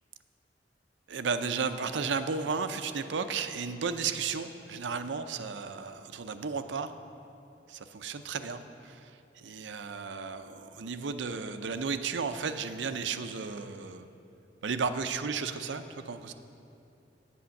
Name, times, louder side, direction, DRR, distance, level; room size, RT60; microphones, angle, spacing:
voice 1, 1.1-6.9 7.7-14.1 14.6-16.3, right 5 dB, 85° right, 9 dB, 0.5 m, -34 dB
9.2 x 8.5 x 6.4 m, 2.7 s
head